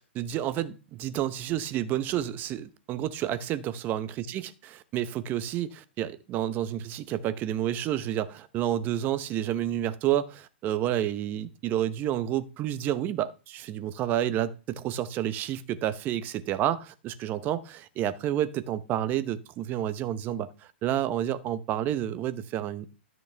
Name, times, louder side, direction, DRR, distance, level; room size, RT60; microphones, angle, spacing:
voice 1, 0.0-20.5 20.8-22.9, right 11 dB, 30° right, 0.8 m, -30 dB
13.0 x 6.1 x 3.4 m
hypercardioid pair, 130°, 6 cm